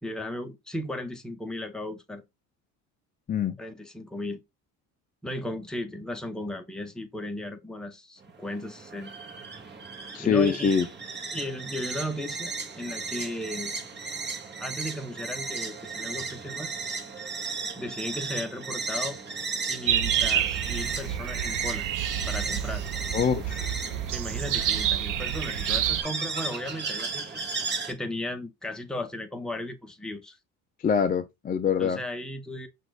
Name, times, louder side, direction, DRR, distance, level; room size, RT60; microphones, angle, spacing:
voice 1, 0.0-2.2 3.6-4.4 5.2-9.1 10.2-10.7 11.3-13.7 14.6-16.7 17.8-19.2 19.7-21.9 22.3-22.8 24.1-27.5 27.9-30.4 31.8-32.7, left 1 dB, ahead, 0.9 m, -35 dB
sound 1, 8.2-27.9, right 4 dB, 25° right, 1.3 m, -35 dB
voice 2, 10.1-10.9 23.1-23.8 30.8-32.0, left 6 dB, 20° left, 0.4 m, -24 dB
sound 2, 19.9-26.0, right 10 dB, 50° right, 0.8 m, -28 dB
5.9 x 2.6 x 3.4 m
supercardioid pair, 85°, 41 cm